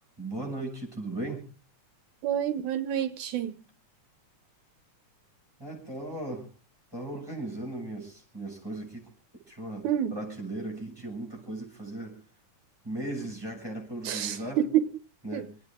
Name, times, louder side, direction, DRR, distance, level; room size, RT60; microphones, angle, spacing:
voice 1, 0.2-1.5 5.6-6.5 6.9-9.1 9.5-12.2 12.8-14.6 15.2-15.5, right 2 dB, 5° right, 6.9 m, -37 dB
voice 2, 2.2-3.6 9.8-10.2 14.0-14.9 15.3-15.5, right 10 dB, 80° right, 2.3 m, -28 dB
27.5 x 9.5 x 3.7 m
omnidirectional pair, 3.4 m